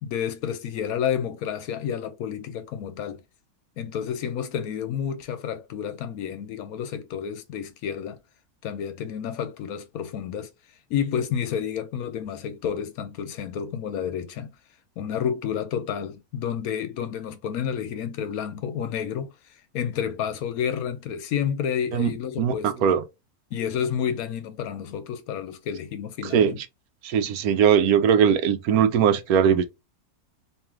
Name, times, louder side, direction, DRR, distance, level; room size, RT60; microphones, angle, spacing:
voice 1, 0.0-3.2 3.8-8.2 8.6-10.5 10.9-14.5 15.0-22.7 23.5-26.6, left 8 dB, 75° left, 1.0 m, -30 dB
voice 2, 22.4-23.0 26.3-26.5 27.0-29.6, right 8 dB, 75° right, 1.0 m, -20 dB
3.6 x 2.9 x 3.1 m
omnidirectional pair, 1.6 m